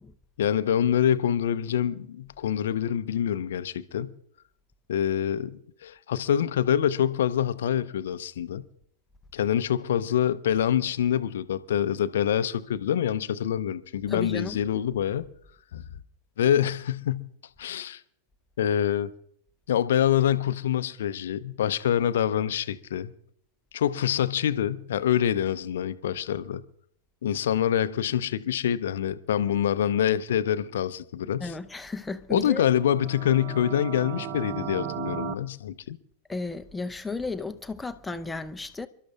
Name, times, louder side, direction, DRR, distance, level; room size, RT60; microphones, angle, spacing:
voice 1, 0.4-4.1 4.9-8.7 9.3-15.3 15.7-15.8 16.4-17.3 17.6-18.0 18.6-19.1 19.7-23.1 23.7-26.6 27.2-31.5 32.3-36.0, left 10 dB, 60° left, 0.6 m, -26 dB
voice 2, 14.1-14.6 31.4-32.6 36.3-38.9, left 3 dB, 10° left, 0.7 m, -34 dB
sound 1, 32.8-35.3, right 8 dB, 40° right, 0.9 m, -35 dB
29.0 x 12.5 x 2.4 m
figure-of-eight pair, 90°, 0 cm